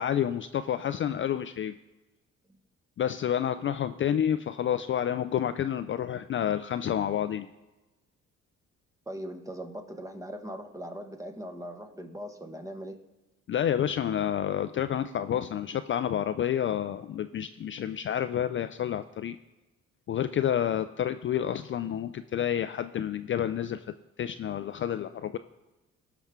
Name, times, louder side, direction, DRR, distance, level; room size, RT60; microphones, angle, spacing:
voice 1, 0.0-1.7 3.0-7.5 13.5-19.4 20.1-23.8 24.2-25.4, left 10 dB, 40° left, 11 dB, 0.4 m, -29 dB
voice 2, 9.1-13.0, equal, 10° right, 6 dB, 1.1 m, -40 dB
17.5 x 5.9 x 3.6 m, 1.1 s
cardioid pair, 90°, 30 cm